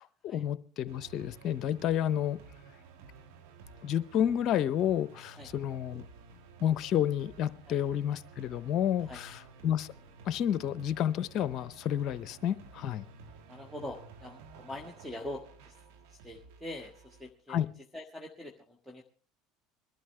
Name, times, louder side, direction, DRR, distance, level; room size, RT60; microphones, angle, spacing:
voice 1, 0.0-2.4 3.8-6.0 6.6-9.9 10.3-13.0 17.5-17.7, left 10 dB, 55° left, 16 dB, 0.7 m, -30 dB
sound 1, 0.9-17.3, right 4 dB, 70° right, 1.7 m, -53 dB
voice 2, 13.5-15.7 16.1-17.6 17.9-19.0, left 1 dB, ahead, 3 dB, 1.5 m, -43 dB
22.0 x 12.0 x 3.3 m, 0.41 s
hypercardioid pair, 75°, 0 cm